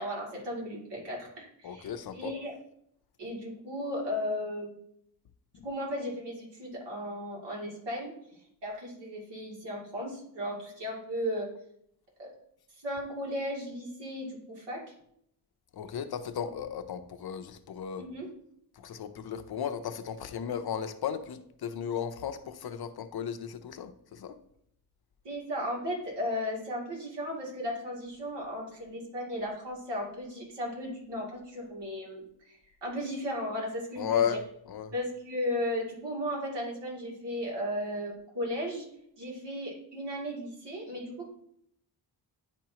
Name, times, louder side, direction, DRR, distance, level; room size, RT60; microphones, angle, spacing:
voice 1, 0.0-2.5 3.2-4.8 5.6-8.1 8.6-11.5 12.2-12.3 12.8-14.8 18.0-18.3 25.2-34.2 34.9-38.9 39.2-41.3, equal, 70° right, 2.6 m, -35 dB
voice 2, 1.6-2.4 5.6-5.7 15.7-18.1 18.8-24.4 34.0-34.9, left 8 dB, 60° left, 0.6 m, -35 dB
9.8 x 4.4 x 2.9 m
wide cardioid pair, 120°, 43 cm